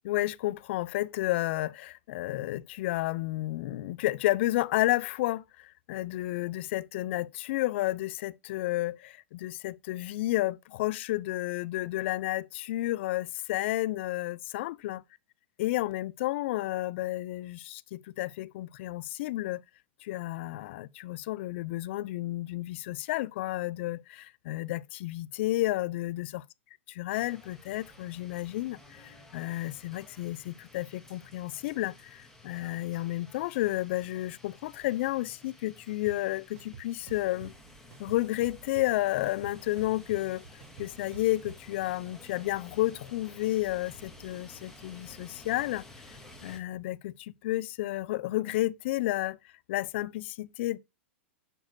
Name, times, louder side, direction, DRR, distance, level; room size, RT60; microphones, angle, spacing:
voice 1, 0.0-15.0 15.6-19.6 20.0-26.4 27.0-37.5 38.0-40.5 40.8-45.8 46.4-49.4 49.7-50.8, left 17 dB, 60° left, 0.4 m, -31 dB
sound 1, 27.1-46.6, left 1 dB, 5° left, 1.9 m, -53 dB
sound 2, 36.1-36.2 36.6-37.5 37.9-39.0 39.3-41.5, right 7 dB, 60° right, 2.2 m, -47 dB
7.3 x 6.6 x 2.2 m
hypercardioid pair, 110°, 7 cm